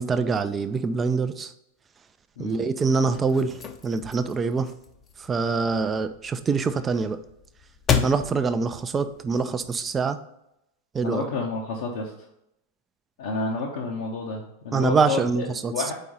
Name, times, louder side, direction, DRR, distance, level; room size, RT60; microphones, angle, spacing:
voice 1, 0.0-1.5 2.4-3.5 3.8-4.7 5.3-7.2 8.0-10.2 10.9-11.3 14.7-15.7, right 4 dB, 20° right, 11 dB, 0.4 m, -24 dB
sound 1, 2.8-9.9, left 7 dB, 25° left, 0.6 m, -33 dB
voice 2, 11.0-12.1 13.2-15.5 15.7-15.9, left 3 dB, 55° left, -2 dB, 0.8 m, -30 dB
4.6 x 4.1 x 5.2 m, 0.83 s
figure-of-eight pair, 90°, 0 cm